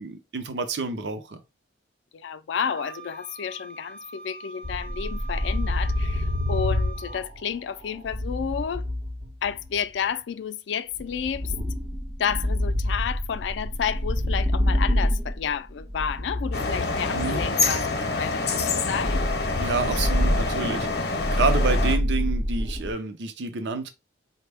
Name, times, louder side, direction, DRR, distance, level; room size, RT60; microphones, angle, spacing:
voice 1, 0.0-1.4 17.1-17.4 19.6-23.9, right 4 dB, 75° right, 0.6 m, -29 dB
voice 2, 2.1-8.9 9.4-11.5 12.2-19.3, left 7 dB, 80° left, 0.3 m, -31 dB
Wind instrument woodwind instrument, 2.7-7.2, right 4 dB, 5° left, 0.4 m, -43 dB
sound 1, 4.6-9.8 11.0-17.8 19.0-22.9, left 1 dB, 60° right, 1.0 m, -27 dB
sound 2, 16.5-22.0, left 3 dB, 60° left, 0.7 m, -27 dB
4.2 x 2.1 x 3.3 m
head